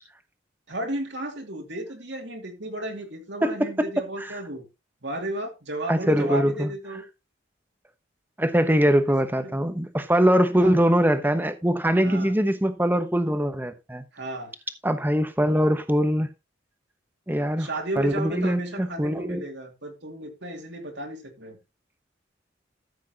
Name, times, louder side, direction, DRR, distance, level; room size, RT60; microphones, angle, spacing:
voice 1, 0.7-4.6 5.0-7.0 9.4-9.6 10.5-10.8 12.0-12.3 14.1-14.5 17.6-21.6, right 1 dB, 60° right, 2.5 m, -34 dB
voice 2, 5.9-6.7 8.4-14.0 14.8-16.3 17.3-17.7 18.0-19.4, equal, 10° right, 1.0 m, -22 dB
13.5 x 7.3 x 2.9 m
head